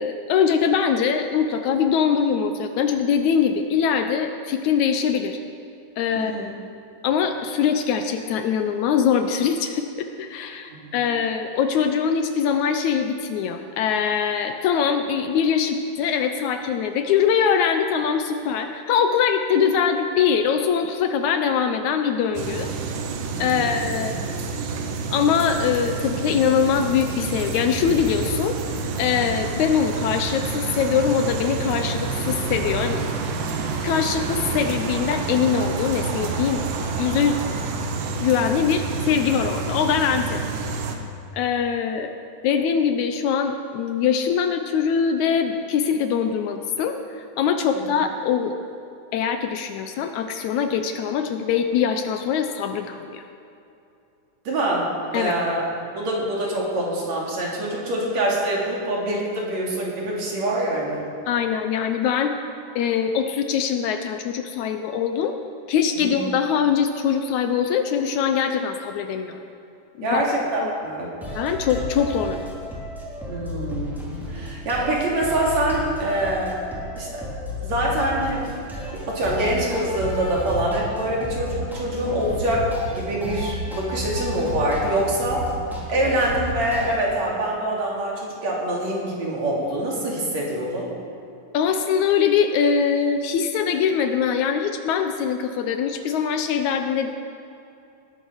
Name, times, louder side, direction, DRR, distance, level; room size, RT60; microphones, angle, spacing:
voice 1, 0.0-5.4 6.0-6.5 7.0-22.7 23.4-24.1 25.1-28.6 29.0-33.0 33.8-36.6 37.0-37.4 38.2-40.4 41.3-42.1 42.4-48.5 49.1-53.2 55.1-55.3 61.3-62.3 62.8-65.3 65.7-69.4 70.0-70.2 70.6-70.7 71.4-72.5 91.5-97.1, left 7 dB, 75° left, 7 dB, 2.0 m, -22 dB
voice 2, 6.1-6.5 10.8-11.1 23.3-23.8 41.0-41.1 47.7-47.8 54.5-55.6 56.0-61.1 66.0-66.2 70.0-71.1 73.3-76.6 76.9-77.3 77.6-78.5 78.9-85.5 85.9-90.9, right 1 dB, 60° right, -3 dB, 3.9 m, -25 dB
sound 1, 22.4-41.0, right 4 dB, 85° right, 2.7 m, -28 dB
sound 2, 71.2-87.0, equal, ahead, 2.7 m, -32 dB
19.0 x 9.3 x 6.3 m, 2.7 s
omnidirectional pair, 3.6 m